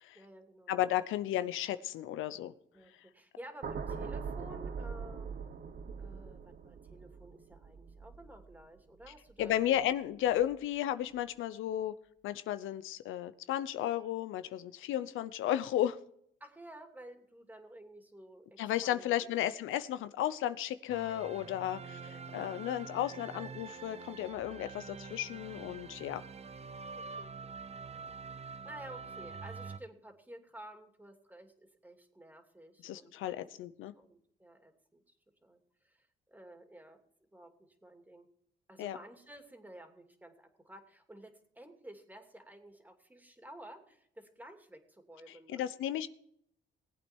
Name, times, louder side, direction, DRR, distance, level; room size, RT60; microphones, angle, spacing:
voice 1, 0.1-0.7 2.7-5.3 6.0-9.8 16.4-19.7 21.9-22.4 26.0-26.5 26.9-27.5 28.1-35.0 35.4-37.0 37.3-38.3 38.7-45.6, right 1 dB, 10° right, 5 dB, 2.7 m, -53 dB
voice 2, 0.7-2.5 9.4-11.9 12.2-16.0 18.6-26.2 32.8-33.9 38.8-39.0 45.5-46.1, left 12 dB, 85° left, 13 dB, 0.7 m, -34 dB
sound 1, 3.6-9.9 10.3-10.6, right 5 dB, 50° right, 1.2 m, -43 dB
sound 2, 20.9-29.8, right 5 dB, 30° right, 0.7 m, -46 dB
19.5 x 8.5 x 4.5 m, 0.69 s
cardioid pair, 90°, 20 cm